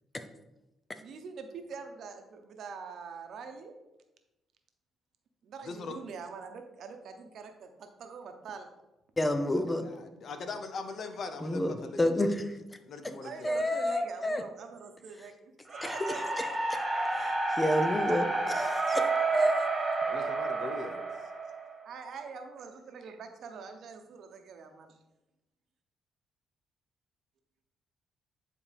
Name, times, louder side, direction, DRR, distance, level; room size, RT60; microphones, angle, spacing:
voice 1, 1.0-3.7 5.4-8.7 13.2-16.5 21.8-24.9, right 5 dB, 65° right, 6 dB, 0.9 m, -44 dB
voice 2, 5.6-6.0 9.8-12.4 12.8-13.5 20.1-21.0, left 4 dB, 55° left, 7 dB, 0.7 m, -41 dB
voice 3, 9.2-9.9 11.4-12.4 13.4-14.4 15.8-16.5 17.1-19.0 19.3-19.7, left 1 dB, 15° left, 8 dB, 0.7 m, -29 dB
sound 1, 15.7-21.9, right 3 dB, 25° right, 1.7 m, -30 dB
9.7 x 4.2 x 3.4 m, 0.96 s
cardioid pair, 90°, 0 cm